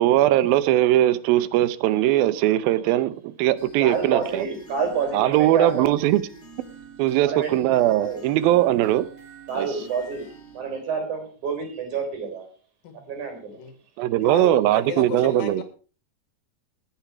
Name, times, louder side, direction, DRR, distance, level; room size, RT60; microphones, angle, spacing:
voice 1, 0.0-4.5 5.1-6.2 7.0-9.1 9.6-9.7 14.0-15.6, right 14 dB, 85° right, 2.6 m, -20 dB
sound 1, 3.6-10.6, right 5 dB, 25° right, 6.3 m, -46 dB
voice 2, 3.8-5.9 7.2-7.7 7.9-8.2 9.5-10.3 10.5-12.5 13.1-13.5, right 5 dB, 55° right, 5.1 m, -28 dB
voice 3, 14.2-15.6, left 7 dB, 75° left, 3.8 m, -33 dB
18.5 x 8.9 x 4.8 m
omnidirectional pair, 4.1 m